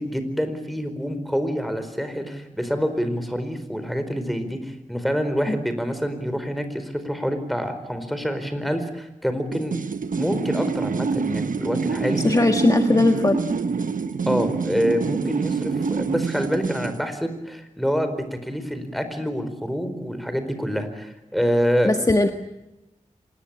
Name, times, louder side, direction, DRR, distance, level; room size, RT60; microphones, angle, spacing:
voice 1, 0.0-9.8 10.1-12.2 14.3-21.9, equal, ahead, 9 dB, 4.5 m, -26 dB
sound 1, 9.5-17.0, right 5 dB, 85° right, 1.1 m, -26 dB
voice 2, 12.2-13.4 21.8-22.3, left 2 dB, 25° left, 6 dB, 1.5 m, -19 dB
26.0 x 20.0 x 8.8 m, 0.94 s
wide cardioid pair, 80°, 13 cm